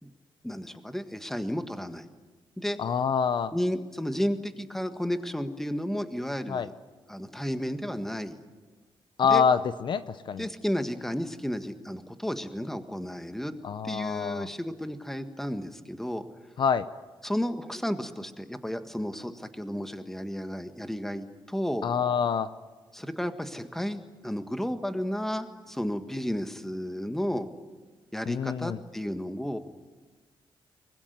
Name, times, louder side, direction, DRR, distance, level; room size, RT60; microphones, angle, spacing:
voice 1, 0.4-2.1 2.6-2.8 3.5-6.7 7.1-8.4 9.3-9.5 10.4-13.5 13.8-16.5 17.2-21.9 22.9-27.5 28.1-29.6, equal, 5° left, 8 dB, 1.6 m, -32 dB
voice 2, 2.8-3.5 6.5-6.7 9.2-10.5 13.6-14.5 16.6-16.8 21.8-22.5 28.3-28.8, left 6 dB, 60° left, 13 dB, 0.8 m, -26 dB
23.5 x 21.0 x 9.5 m, 1.3 s
cardioid pair, 125°, 9 cm